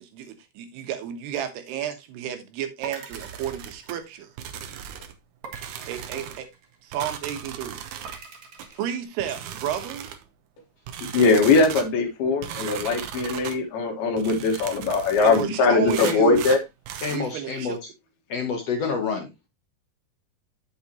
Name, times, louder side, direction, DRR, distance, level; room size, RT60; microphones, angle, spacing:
voice 1, 0.0-4.3 5.9-6.5 6.8-7.8 8.7-10.1 15.2-16.4 17.1-17.8, right 9 dB, 85° right, 3.3 m, -32 dB
sound 1, 2.8-4.6 5.4-7.1 8.0-9.0, right 5 dB, 55° right, 2.7 m, -43 dB
sound 2, 3.1-4.0 4.4-5.2 5.5-6.4 6.9-8.2 8.6-8.7 9.2-10.3 10.9-11.9 12.4-13.6 14.2-15.5 15.9-17.2, right 9 dB, 70° right, 1.9 m, -37 dB
voice 2, 11.1-16.6, left 4 dB, 75° left, 3.4 m, -21 dB
voice 3, 17.0-17.8 18.3-19.3, left 5 dB, 55° left, 1.9 m, -28 dB
8.4 x 8.0 x 2.9 m
omnidirectional pair, 4.6 m